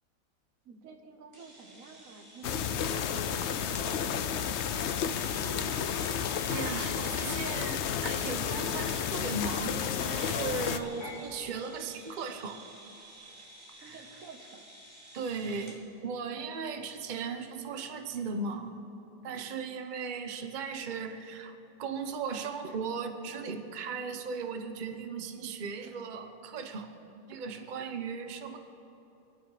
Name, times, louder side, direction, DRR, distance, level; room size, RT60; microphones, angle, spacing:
voice 1, 0.6-4.7 13.7-14.7, right 5 dB, 55° right, 5 dB, 1.4 m, -50 dB
sound 1, 1.3-15.8, right 2 dB, 15° right, 2.5 m, -52 dB
sound 2, 2.4-10.8, left 8 dB, 70° left, 0.6 m, -32 dB
sound 3, 4.6-8.8 10.8-11.2, left 1 dB, 45° left, 2.8 m, -46 dB
voice 2, 6.5-12.6 13.8-14.0 15.1-18.7 19.2-26.9 27.3-28.6, right 5 dB, 40° right, 7 dB, 0.8 m, -37 dB
26.5 x 9.0 x 4.9 m, 3.0 s
omnidirectional pair, 1.8 m